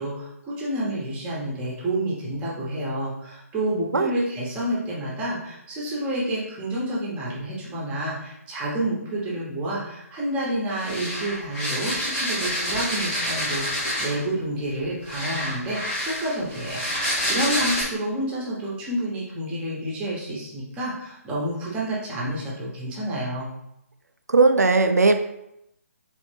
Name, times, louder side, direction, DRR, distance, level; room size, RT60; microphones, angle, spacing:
voice 1, 0.0-23.5, right 1 dB, 15° right, -5 dB, 1.1 m, -29 dB
sound 1, 10.8-14.3 15.1-17.8, equal, 10° left, 1.3 m, -28 dB
voice 2, 24.3-25.1, right 3 dB, 80° right, 7 dB, 0.5 m, -17 dB
4.1 x 3.5 x 3.4 m, 0.82 s
figure-of-eight pair, 145°, 9 cm